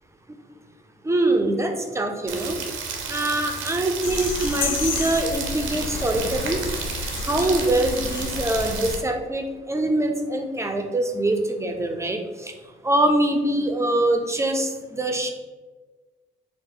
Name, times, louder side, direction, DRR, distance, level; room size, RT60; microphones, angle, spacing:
voice 1, 1.0-2.6 3.1-6.6 7.2-12.5 12.8-15.3, right 1 dB, 15° right, 4 dB, 0.5 m, -24 dB
Rain, 2.3-9.0, right 5 dB, 80° right, 0.7 m, -32 dB
sound 1, 4.0-9.0, left 4 dB, 80° left, 0.5 m, -31 dB
4.8 x 2.1 x 3.8 m, 1.4 s
cardioid pair, 90°, 20 cm